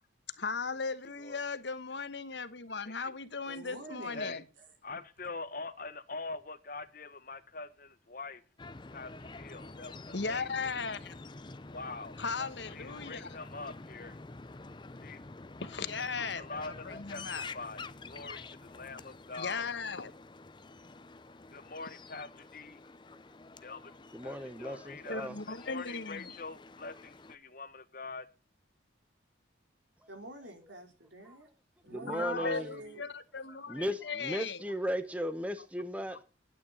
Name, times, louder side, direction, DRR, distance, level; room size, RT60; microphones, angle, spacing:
voice 1, 0.4-4.4 10.1-11.2 12.2-13.4 15.6-17.5 19.4-20.1 25.1-26.3 32.1-34.6, left 4 dB, 65° left, 1.2 m, -37 dB
voice 2, 3.5-4.4 30.1-31.5 31.8-33.0, equal, 75° right, 3.9 m, -45 dB
voice 3, 4.8-8.4 8.9-10.0 10.3-10.7 11.7-12.2 12.7-14.1 15.0-15.2 16.4-17.2 17.5-19.6 21.5-22.8 23.6-23.9 24.2-25.3 25.6-28.3 32.3-32.5, left 3 dB, 45° left, 1.3 m, -44 dB
sound 1, 8.6-27.4, left 3 dB, 25° left, 0.6 m, -48 dB
voice 4, 24.1-25.4 31.9-32.7 33.7-36.2, equal, 5° right, 1.0 m, -36 dB
12.0 x 9.2 x 7.2 m
head